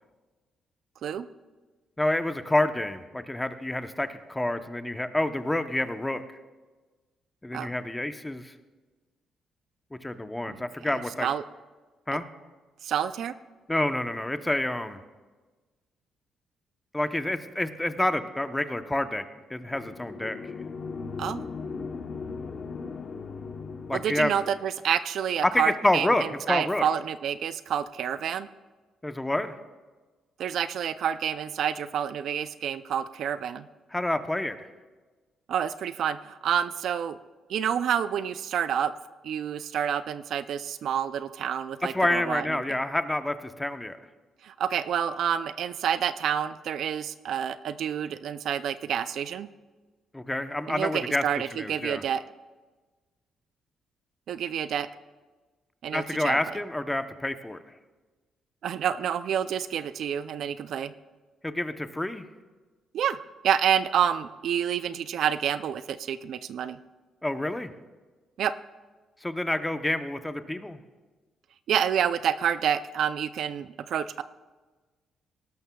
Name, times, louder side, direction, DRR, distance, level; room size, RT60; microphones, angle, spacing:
voice 1, 2.0-6.2 7.4-8.5 10.0-11.3 12.1-12.2 13.7-15.0 16.9-19.2 19.5-20.4 23.9-24.3 25.4-26.9 29.0-29.6 33.9-34.6 41.8-44.0 50.1-51.2 51.5-52.0 55.9-57.6 61.4-62.3 67.2-67.7 69.2-70.8, left 1 dB, 10° left, 9 dB, 0.8 m, -28 dB
voice 2, 10.9-11.4 12.8-13.3 21.2-21.5 23.9-28.5 30.4-33.7 35.5-37.2 37.5-38.9 39.2-42.8 44.4-49.5 50.7-52.2 54.3-54.9 55.8-56.5 58.6-60.9 62.9-63.2 63.4-66.8 68.4-68.5 71.7-74.2, right 9 dB, 70° right, 13 dB, 0.4 m, -28 dB
sound 1, 19.6-24.6, left 4 dB, 50° left, 0.9 m, -38 dB
18.5 x 12.5 x 2.3 m, 1.3 s
cardioid pair, 90°, 0 cm